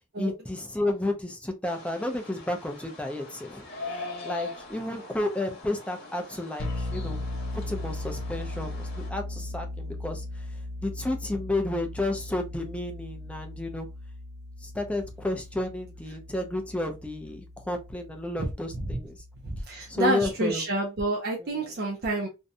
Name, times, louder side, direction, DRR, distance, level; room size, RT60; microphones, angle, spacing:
voice 1, 0.2-7.2 7.5-10.5 10.8-13.9 14.6-19.2 19.9-20.6 21.4-21.7, left 2 dB, 5° left, 0.4 m, -32 dB
sound 1, 1.6-9.1, left 3 dB, 50° left, 0.9 m, -42 dB
sound 2, 6.6-20.0, left 2 dB, 70° left, 0.6 m, -38 dB
voice 2, 19.4-22.3, right 2 dB, 50° right, 0.5 m, -28 dB
2.6 x 2.1 x 2.5 m
head